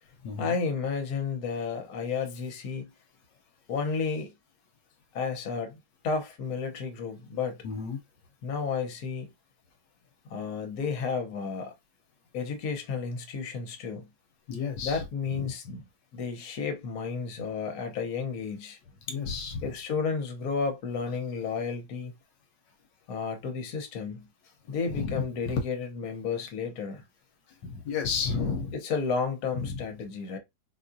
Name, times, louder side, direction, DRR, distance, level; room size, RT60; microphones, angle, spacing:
voice 1, 0.4-2.9 3.7-4.3 5.1-7.6 8.4-9.3 10.3-11.7 12.3-14.0 14.8-15.8 16.1-18.8 19.6-22.1 23.1-24.3 24.7-27.0 28.7-30.4, left 5 dB, 60° left, 1.2 m, -32 dB
voice 2, 7.6-8.0 14.5-15.0 15.4-15.5 19.1-19.7 24.9-25.2 27.6-28.7 29.6-29.7, left 5 dB, 80° left, 1.3 m, -31 dB
4.3 x 2.4 x 2.6 m
omnidirectional pair, 2.0 m